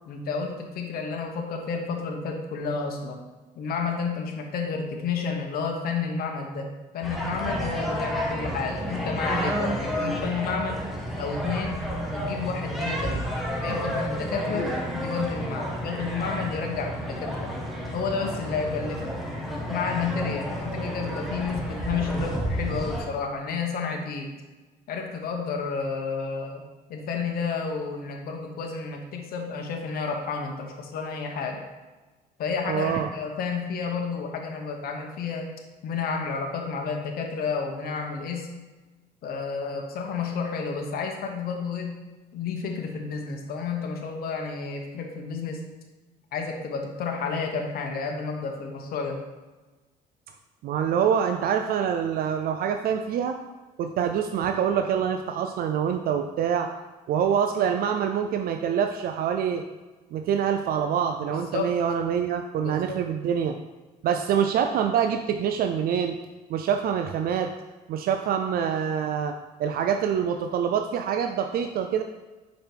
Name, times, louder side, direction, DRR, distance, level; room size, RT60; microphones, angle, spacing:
voice 1, 0.1-3.2 3.6-6.7 6.9-10.8 11.2-13.2 13.6-17.5 17.9-19.1 19.7-24.3 24.9-26.6 26.9-31.6 32.4-35.5 35.8-38.5 39.2-42.0 42.3-45.6 46.3-49.2 61.3-61.7 62.6-63.0, left 5 dB, 60° left, 2 dB, 1.1 m, -31 dB
sound 1, 7.0-23.0, equal, ahead, 1.2 m, -31 dB
voice 2, 32.7-33.1 50.6-53.4 53.8-56.7 57.1-59.6 60.1-63.6 64.0-66.2 66.5-67.5 67.9-69.3 69.6-72.0, right 8 dB, 60° right, 6 dB, 0.4 m, -25 dB
5.2 x 5.1 x 4.5 m, 1.2 s
cardioid pair, 110°, 17 cm